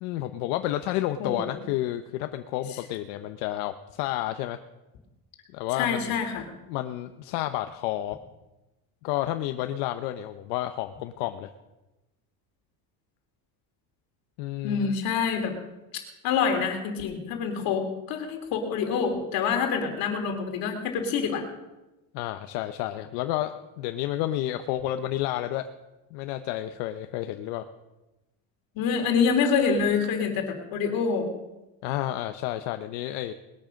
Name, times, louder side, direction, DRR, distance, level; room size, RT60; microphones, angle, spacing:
voice 1, 0.0-4.6 5.5-6.1 6.7-8.2 9.0-11.5 14.4-15.0 22.1-25.6 26.1-27.6 31.8-33.3, left 14 dB, 70° left, 8 dB, 0.9 m, -30 dB
voice 2, 1.2-1.6 5.7-6.4 14.6-15.5 16.2-21.4 28.7-31.3, left 6 dB, 45° left, 3 dB, 3.2 m, -26 dB
20.5 x 9.0 x 6.4 m, 1.0 s
cardioid pair, 165°, 47 cm